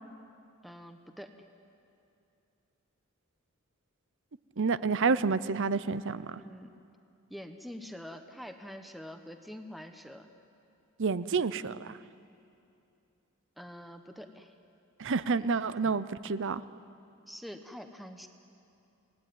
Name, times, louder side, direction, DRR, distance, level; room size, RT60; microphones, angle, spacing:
voice 1, 0.6-1.3 6.3-6.7 7.3-10.3 13.6-14.5 15.8-16.0 17.3-18.3, equal, ahead, 5 dB, 1.1 m, -45 dB
voice 2, 4.6-6.4 11.0-12.0 15.0-16.6, right 4 dB, 60° right, 15 dB, 0.7 m, -29 dB
27.0 x 19.0 x 9.4 m, 2.6 s
head